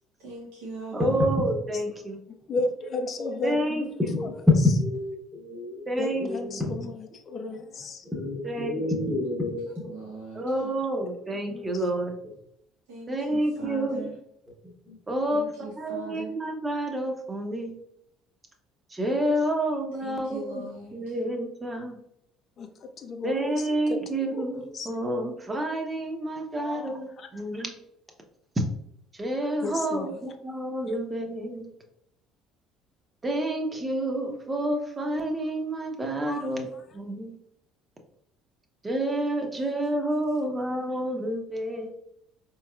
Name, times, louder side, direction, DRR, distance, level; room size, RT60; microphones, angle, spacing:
voice 1, 0.2-1.2 9.8-10.7 12.9-14.2 15.3-16.3 19.9-21.2, right 3 dB, 80° right, -5 dB, 0.9 m, -41 dB
voice 2, 0.9-2.2 3.4-3.8 5.9-6.3 8.4-8.8 10.3-12.2 13.1-14.1 15.1-15.5 15.8-17.7 18.9-20.6 20.9-22.0 23.2-27.7 28.6-28.7 29.2-31.7 33.2-36.7 36.9-37.4 38.8-41.9, right 1 dB, 25° right, 3 dB, 0.9 m, -29 dB
voice 3, 2.5-3.9 4.2-4.3 6.0-8.0 11.5-11.8 22.6-24.0 24.3-24.9 26.6-27.3 29.6-30.2 36.2-36.8, left 2 dB, 50° left, 6 dB, 0.6 m, -34 dB
voice 4, 4.0-4.3 4.8-5.9 6.2-6.9 8.1-9.9 14.9-15.0, left 1 dB, ahead, -5 dB, 1.1 m, -30 dB
4.4 x 3.1 x 2.3 m, 0.75 s
hypercardioid pair, 70°, 0 cm